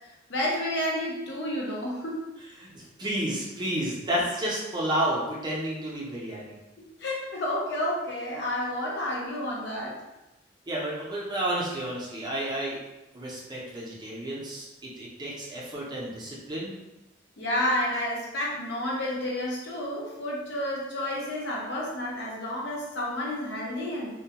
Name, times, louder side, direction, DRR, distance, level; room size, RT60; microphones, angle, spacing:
voice 1, 0.3-2.3 6.8-10.0 17.4-24.1, left 1 dB, 65° left, -4 dB, 0.6 m, -30 dB
voice 2, 2.6-6.5 10.7-12.8 13.1-16.7, right 1 dB, 25° right, -5 dB, 0.5 m, -31 dB
2.1 x 2.1 x 2.8 m, 0.99 s
head